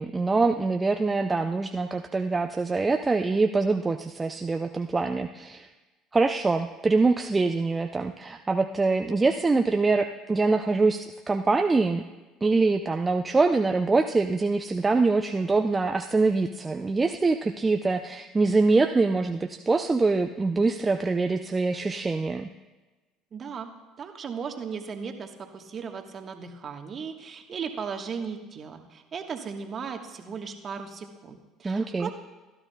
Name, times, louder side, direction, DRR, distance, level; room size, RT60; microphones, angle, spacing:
voice 1, 0.0-5.7 6.1-12.0 12.4-22.5 31.6-32.1, right 3 dB, 20° right, 6 dB, 0.5 m, -24 dB
voice 2, 23.3-23.7 24.0-32.1, right 6 dB, 40° right, 5 dB, 1.3 m, -36 dB
16.0 x 12.0 x 2.3 m, 1.2 s
hypercardioid pair, 70°, 0 cm